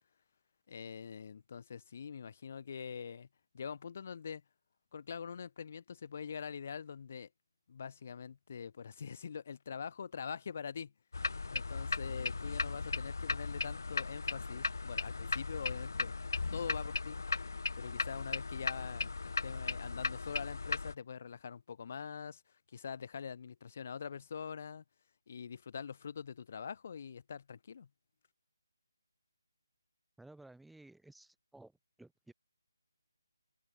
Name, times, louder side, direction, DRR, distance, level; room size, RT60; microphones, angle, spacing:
voice 1, 0.7-3.3 3.5-4.4 4.9-7.3 7.7-10.9 11.5-16.2 16.5-17.2 17.7-22.4 22.7-24.8 25.3-27.9, left 6 dB, 25° left, 1.3 m, -44 dB
sound 1, 11.1-20.9, left 4 dB, 50° left, 0.3 m, -37 dB
voice 2, 30.2-31.7 32.0-32.3, right 2 dB, ahead, 0.9 m, -56 dB
hypercardioid pair, 180°, 2 cm